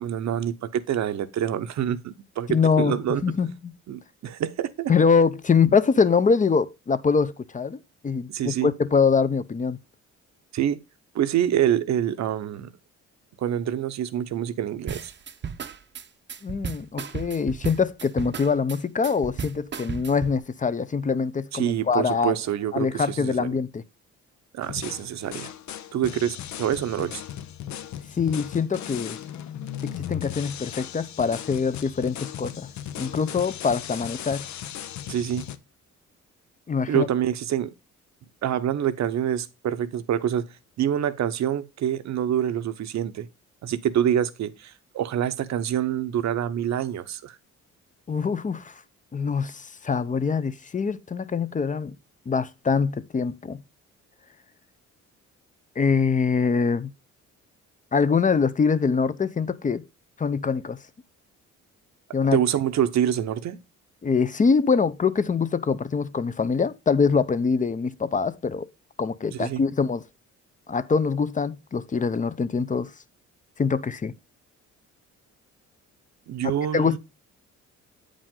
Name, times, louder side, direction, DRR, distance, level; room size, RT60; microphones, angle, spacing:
voice 1, 0.0-3.2 3.9-4.9 8.3-8.7 10.5-10.8 11.1-12.7 13.4-15.1 21.5-23.5 24.5-25.5 25.9-27.2 35.1-35.5 36.9-37.7 38.4-40.5 40.8-43.3 43.6-47.4 62.3-63.6 69.3-69.6 76.3-77.0, right 10 dB, 65° right, 0.9 m, -26 dB
voice 2, 2.5-3.7 4.9-9.8 16.4-22.3 22.7-23.8 28.2-29.2 29.8-32.7 33.0-34.5 36.7-37.1 48.1-48.8 49.1-52.0 52.3-53.6 55.8-56.9 57.9-59.9 60.2-60.8 62.1-62.4 64.0-68.7 69.0-70.0 70.7-72.9 73.6-74.1 76.4-77.0, left 5 dB, 25° left, 0.6 m, -24 dB
sound 1, 14.9-20.4, right 7 dB, 40° right, 0.7 m, -35 dB
sound 2, 24.6-35.6, left 10 dB, 70° left, 0.8 m, -37 dB
8.4 x 5.2 x 3.7 m
cardioid pair, 90°, 30 cm